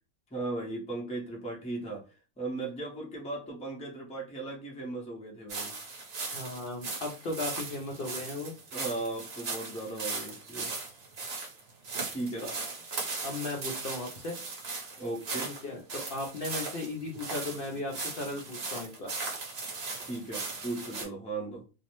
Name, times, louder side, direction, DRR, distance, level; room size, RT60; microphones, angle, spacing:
voice 1, 0.3-2.1 2.4-5.7 8.7-10.7 12.1-12.5 15.0-15.5 20.0-21.6, right 2 dB, 10° left, 0.4 m, -37 dB
sound 1, 5.5-21.0, right 3 dB, 50° right, 0.9 m, -38 dB
voice 2, 6.3-8.5 12.4-12.5 13.2-14.3 15.6-19.1, left 2 dB, 65° left, 0.5 m, -36 dB
2.6 x 2.0 x 2.9 m
omnidirectional pair, 1.5 m